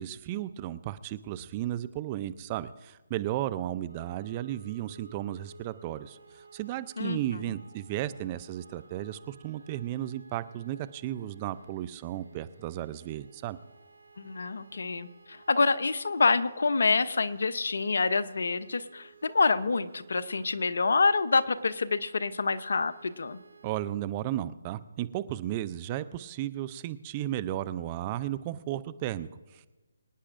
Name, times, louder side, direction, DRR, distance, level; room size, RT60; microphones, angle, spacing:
voice 1, 0.0-13.6 23.6-29.7, right 13 dB, 25° right, 15 dB, 0.5 m, -34 dB
sound 1, 3.9-23.8, right 5 dB, 80° right, 5.0 m, -56 dB
voice 2, 14.2-23.4, left 4 dB, 70° left, 13 dB, 0.7 m, -27 dB
25.0 x 9.7 x 2.6 m, 1.2 s
figure-of-eight pair, 155°, 0 cm